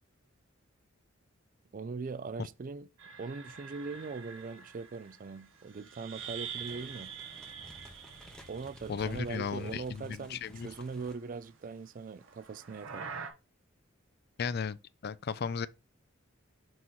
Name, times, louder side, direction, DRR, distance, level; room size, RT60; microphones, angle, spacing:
voice 1, 1.7-2.9 3.2-7.1 8.5-13.1, right 4 dB, 40° right, 0.4 m, -41 dB
sound 1, 3.0-9.7 9.9-11.3 12.2-13.3, right 7 dB, 70° right, 1.1 m, -46 dB
sound 2, 6.1-11.1, equal, 5° left, 0.9 m, -54 dB
voice 2, 8.9-10.7 14.4-14.8 15.0-15.7, left 6 dB, 50° left, 0.4 m, -35 dB
6.3 x 3.0 x 5.4 m
head